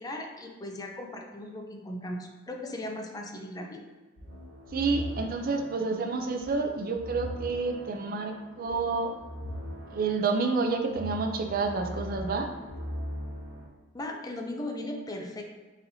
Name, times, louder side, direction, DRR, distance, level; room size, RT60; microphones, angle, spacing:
voice 1, 0.0-3.9 13.9-15.4, left 1 dB, 20° left, 2 dB, 0.4 m, -37 dB
sound 1, 4.2-13.7, equal, 75° right, 0.9 m, -40 dB
voice 2, 4.7-9.1 9.9-12.5, right 4 dB, 50° right, 4 dB, 0.4 m, -29 dB
4.1 x 4.1 x 2.7 m, 1.3 s
head